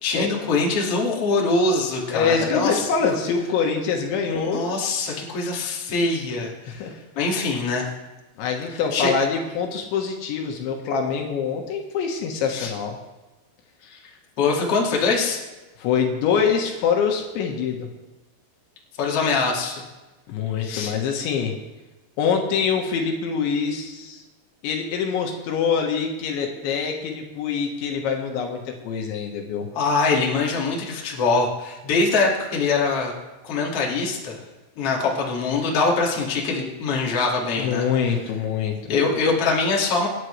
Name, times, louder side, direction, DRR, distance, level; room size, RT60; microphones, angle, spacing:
voice 1, 0.0-2.9 4.3-6.9 7.2-7.9 8.9-9.1 12.5-12.7 13.9-14.0 14.4-15.4 19.0-19.8 20.6-20.9 29.7-33.1 33.4-34.4 34.8-37.9 38.9-40.1, left 3 dB, 40° left, -2 dB, 2.5 m, -23 dB
voice 2, 2.1-4.7 6.7-7.0 8.4-13.0 15.8-17.9 20.3-21.5 22.2-24.2 24.6-29.7 37.6-38.9, left 6 dB, 80° left, 2 dB, 3.6 m, -24 dB
26.0 x 11.0 x 3.3 m, 1.1 s
omnidirectional pair, 5.4 m